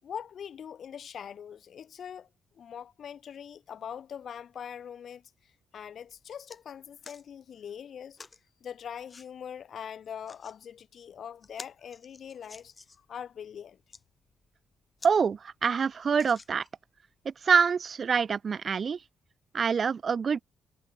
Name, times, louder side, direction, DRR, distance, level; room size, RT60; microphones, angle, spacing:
voice 1, 0.0-2.3 2.5-8.2 8.6-13.8, left 8 dB, 55° left, 8.0 m, -42 dB
sound 1, 5.8-5.9 6.2-6.6 7.0-7.2 8.2-8.4 9.1-9.3 10.0-10.6 11.0-11.1 11.4-13.1 13.7-14.0 14.6-14.7 15.0-15.2 15.5-15.6 16.1-16.9 17.5-17.6, left 3 dB, 25° left, 6.0 m, -49 dB
voice 2, 15.0-16.6 17.3-19.0 19.5-20.4, right 6 dB, 40° right, 0.5 m, -26 dB
cardioid pair, 130°, 0 cm